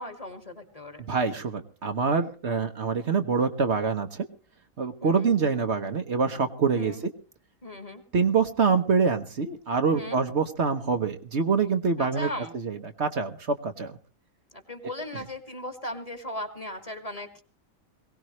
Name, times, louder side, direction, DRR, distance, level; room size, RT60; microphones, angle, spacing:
voice 1, 0.0-1.0 5.0-5.3 6.7-7.0 7.6-8.0 9.9-10.2 12.0-12.6 14.5-17.4, left 1 dB, 25° left, 7 dB, 2.1 m, -37 dB
voice 2, 1.1-4.3 4.8-7.1 8.1-12.3 12.5-14.0, right 5 dB, 55° right, 7 dB, 1.3 m, -25 dB
22.0 x 18.0 x 3.1 m, 0.37 s
omnidirectional pair, 1.4 m